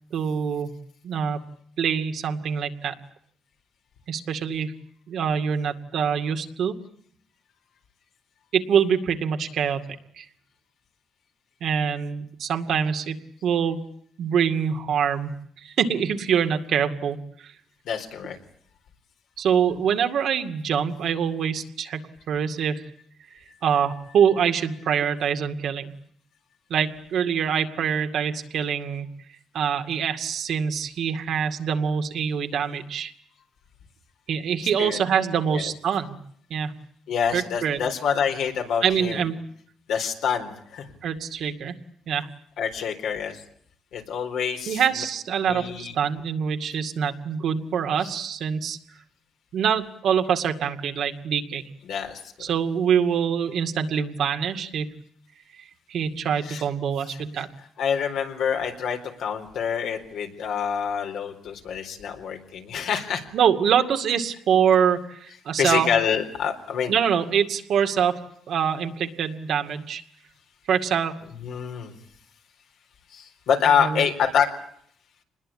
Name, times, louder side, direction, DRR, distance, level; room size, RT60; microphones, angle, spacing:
voice 1, 0.1-0.7 1.0-2.9 4.1-4.8 5.1-6.8 8.5-9.8 10.2-10.3 11.6-13.8 14.2-17.5 19.4-22.9 23.6-25.9 26.7-29.1 29.5-33.1 34.3-36.2 36.5-36.8 37.3-37.8 38.8-39.4 41.0-41.7 42.1-42.3 44.7-48.8 49.5-51.6 52.4-55.0 55.9-57.5 63.3-65.9 66.9-68.2 68.5-70.0 70.7-71.2 73.8-74.1, right 7 dB, 70° right, 6 dB, 2.2 m, -25 dB
voice 2, 17.8-18.4 34.8-35.0 35.5-35.6 37.1-39.2 39.9-40.9 42.6-43.4 43.9-44.8 45.4-45.9 48.0-48.1 51.8-52.3 56.4-56.6 57.1-57.4 57.8-63.2 65.6-67.0 71.4-71.9 73.1-74.5, left 7 dB, 80° left, 3 dB, 4.1 m, -26 dB
26.0 x 20.5 x 8.7 m, 0.67 s
cardioid pair, 90°, 0 cm